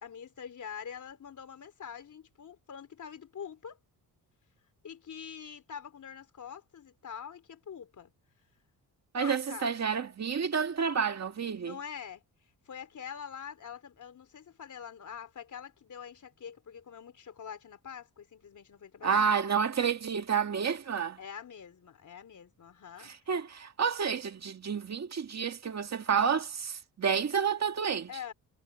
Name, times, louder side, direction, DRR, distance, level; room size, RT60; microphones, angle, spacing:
voice 1, 0.0-3.8 4.8-8.1 9.2-9.8 11.6-12.2 12.7-19.3 21.2-23.1 28.1-28.3, left 7 dB, 50° left, 3.6 m, -45 dB
voice 2, 9.1-11.8 19.0-21.2 23.0-28.1, right 6 dB, 45° right, 2.0 m, -30 dB
cardioid pair, 120°, 38 cm